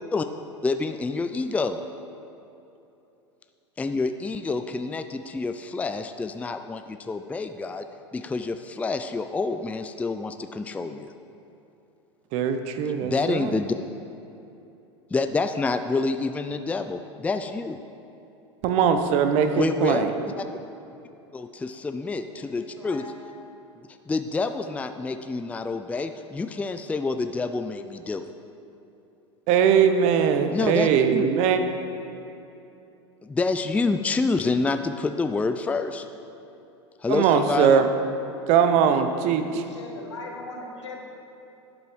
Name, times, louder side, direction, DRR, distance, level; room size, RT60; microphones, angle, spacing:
voice 1, 0.6-1.8 3.8-7.9 8.1-11.1 13.0-13.8 15.1-17.8 19.6-20.1 20.4-20.5 21.3-23.1 24.1-28.3 30.5-31.3 33.2-36.1 37.0-37.8, left 3 dB, 10° left, 9 dB, 0.4 m, -27 dB
voice 2, 12.3-13.6 18.6-20.1 29.5-31.6 37.1-37.9 38.5-39.6, right 7 dB, 50° right, 8 dB, 0.9 m, -21 dB
voice 3, 22.3-23.1 39.2-41.0, left 3 dB, 85° left, 0 dB, 1.9 m, -40 dB
11.5 x 8.1 x 4.6 m, 2.9 s
hypercardioid pair, 90°, 15 cm